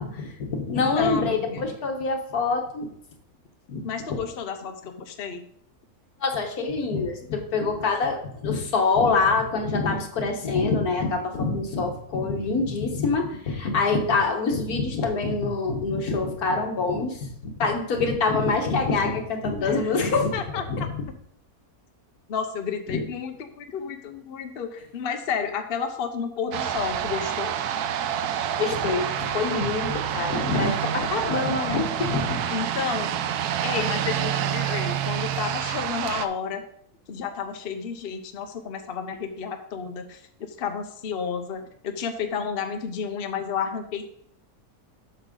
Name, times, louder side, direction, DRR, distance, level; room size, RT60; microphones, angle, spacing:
voice 1, 0.0-2.9 3.7-3.8 6.2-17.3 17.6-20.3 20.7-21.1 22.9-23.0 28.6-32.4, left 4 dB, 75° left, 3 dB, 1.8 m, -25 dB
voice 2, 0.7-1.7 3.8-5.4 19.6-19.8 20.1-20.6 22.3-27.5 32.5-33.2 33.6-36.6 37.1-40.2 40.6-44.2, left 6 dB, 50° left, 6 dB, 0.8 m, -31 dB
sound 1, 26.5-36.3, right 9 dB, 85° right, 1.1 m, -28 dB
8.0 x 6.4 x 3.8 m, 0.67 s
omnidirectional pair, 1.6 m